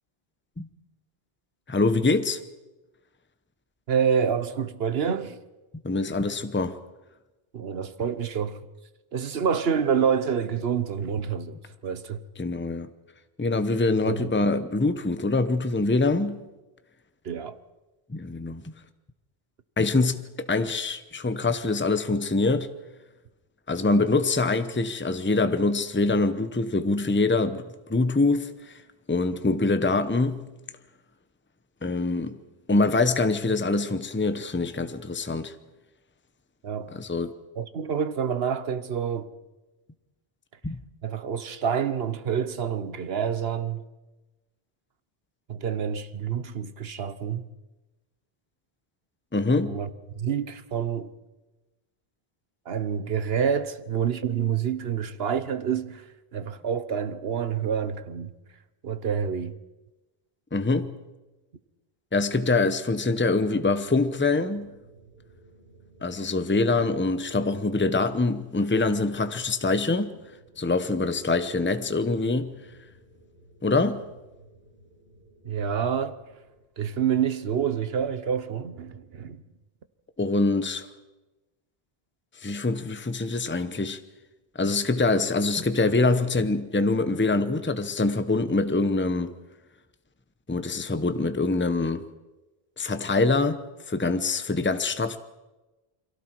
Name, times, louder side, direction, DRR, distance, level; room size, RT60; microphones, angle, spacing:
voice 1, 1.7-2.4 5.8-6.8 12.4-12.9 13.4-16.4 18.1-18.7 19.8-22.7 23.7-27.6 27.9-28.8 29.1-30.4 31.8-32.4 32.7-35.5 36.9-37.3 40.6-40.8 49.3-49.8 60.5-61.0 62.1-64.7 66.0-70.2 70.6-72.5 73.6-74.0 80.2-80.9 82.4-84.0 84.5-89.4 90.5-92.0 92.8-95.2, left 3 dB, 10° left, 0.8 m, -24 dB
voice 2, 3.9-5.4 7.5-8.6 9.1-11.6 11.8-12.2 14.0-14.3 17.2-17.6 36.6-36.9 37.6-39.3 41.0-43.8 45.5-47.4 49.7-49.9 50.2-51.1 52.7-58.3 58.8-59.6 75.4-76.2 76.8-79.4, right 7 dB, 70° right, 1.2 m, -27 dB
sound 1, 62.9-76.6, right 1 dB, 85° right, 3.9 m, -56 dB
29.0 x 23.0 x 4.6 m
omnidirectional pair, 1.1 m